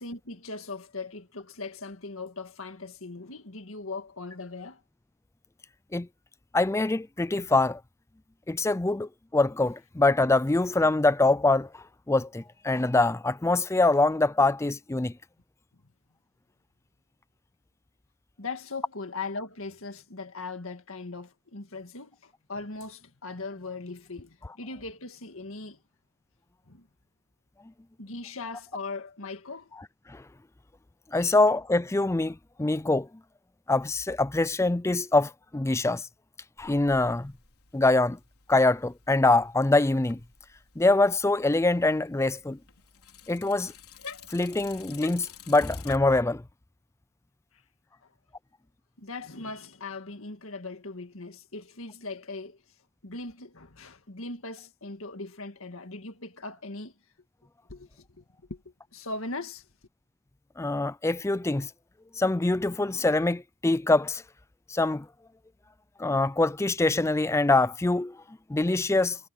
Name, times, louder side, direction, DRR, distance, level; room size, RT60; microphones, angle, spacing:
voice 1, 0.0-4.8 18.4-25.8 26.7-26.9 28.0-29.7 31.1-31.3 49.0-52.6 53.0-56.9 57.7-58.2 58.5-58.6 58.9-59.7, left 3 dB, 65° left, 2.0 m, -39 dB
voice 2, 6.5-7.8 8.5-11.7 12.1-15.1 30.1-30.2 31.1-33.1 33.7-36.1 36.6-37.3 37.7-38.2 38.5-40.2 40.8-42.6 43.3-43.7 44.3-46.4 60.6-61.7 62.2-64.2 64.7-65.1 66.0-68.2 68.5-69.2, left 2 dB, 15° left, 0.4 m, -24 dB
Bicycle, 36.6-46.0, left 7 dB, 85° left, 4.3 m, -50 dB
head